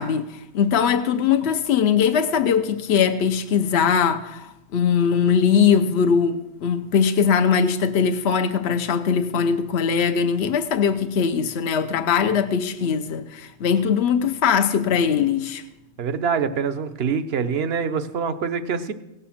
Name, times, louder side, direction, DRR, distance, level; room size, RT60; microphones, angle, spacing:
voice 1, 0.0-15.6, left 7 dB, 70° left, 1.0 m, -21 dB
voice 2, 16.0-18.9, right 6 dB, 65° right, 1.1 m, -25 dB
17.5 x 6.9 x 7.2 m
omnidirectional pair, 1.2 m